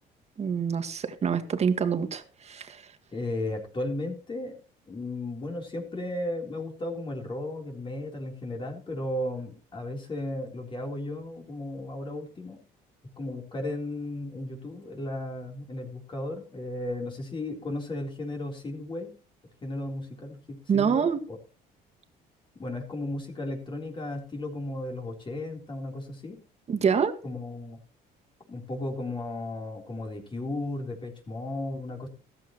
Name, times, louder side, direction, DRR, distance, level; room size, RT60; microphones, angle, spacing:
voice 1, 0.4-2.9 20.7-21.2 26.7-27.1, right 6 dB, 40° right, 1.8 m, -26 dB
voice 2, 3.1-4.6 4.9-12.6 13.2-19.1 19.6-21.4 22.6-26.4 27.2-27.8 28.5-32.1, left 1 dB, 30° left, 3.8 m, -35 dB
15.0 x 14.0 x 3.1 m
cardioid pair, 110°, 17 cm